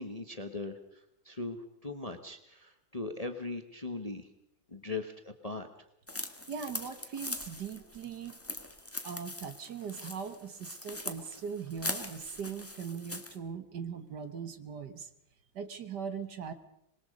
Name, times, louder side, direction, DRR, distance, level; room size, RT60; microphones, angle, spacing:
voice 1, 0.0-4.3 4.7-5.7, left 3 dB, 25° left, 7 dB, 1.1 m, -40 dB
sound 1, 6.1-13.4, left 1 dB, 10° left, 1.4 m, -41 dB
voice 2, 6.5-8.4 9.0-15.1 15.6-16.5, right 6 dB, 60° right, 10 dB, 1.8 m, -40 dB
26.0 x 21.0 x 5.3 m, 0.76 s
omnidirectional pair, 2.1 m